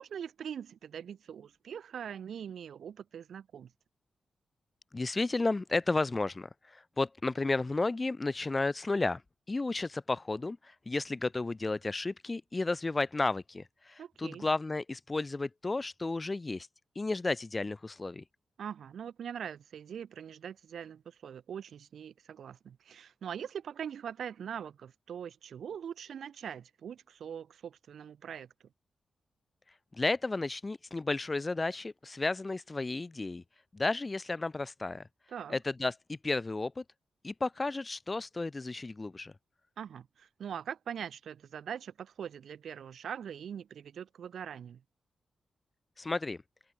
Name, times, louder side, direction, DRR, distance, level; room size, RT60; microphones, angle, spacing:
voice 1, 0.0-3.7 14.0-14.5 18.6-28.5 35.3-35.6 39.8-44.8, right 8 dB, 80° right, 8.0 m, -42 dB
voice 2, 4.9-9.2 9.5-16.7 16.9-18.2 29.9-33.4 33.7-35.1 35.5-36.8 37.2-39.3 46.0-46.4, left 3 dB, 25° left, 0.9 m, -33 dB
wide cardioid pair, 125°, 0 cm